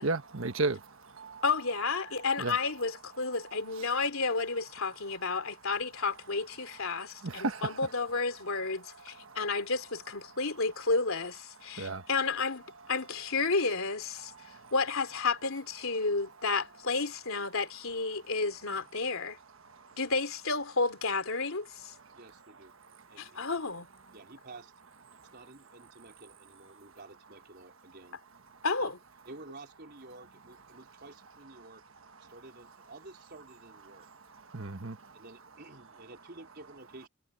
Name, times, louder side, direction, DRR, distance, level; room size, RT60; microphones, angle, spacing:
voice 1, 0.0-1.4 2.4-2.6 3.7-3.9 6.9-7.8 8.8-9.5 10.3-10.4 11.6-12.1 14.2-14.7 19.6-20.0 21.9-22.2 22.8-23.5 25.1-25.3 26.7-27.0 28.5-28.6 32.2-32.3 33.9-35.2, right 3 dB, 65° right, 1.4 m, -37 dB
voice 2, 1.4-12.6 12.9-14.3 14.7-19.4 19.9-21.9 23.2-23.9 28.6-29.0, left 4 dB, 75° left, 3.2 m, -31 dB
voice 3, 22.1-22.7 23.1-23.4 24.1-24.7 25.2-28.2 28.8-28.9 29.3-31.8 32.2-34.1 35.1-37.1, right 2 dB, 50° right, 4.3 m, -51 dB
head